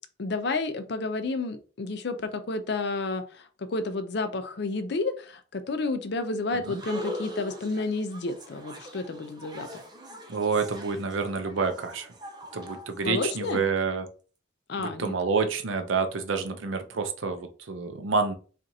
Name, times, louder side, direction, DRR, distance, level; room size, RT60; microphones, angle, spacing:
voice 1, 0.2-9.8 13.0-13.6 14.7-15.2, left 3 dB, 55° left, 0.5 m, -31 dB
sound 1, 6.6-13.5, equal, 20° right, 0.4 m, -41 dB
voice 2, 10.3-12.1 12.5-14.1 14.8-18.3, right 4 dB, 80° right, 0.6 m, -28 dB
4.4 x 2.5 x 2.7 m
head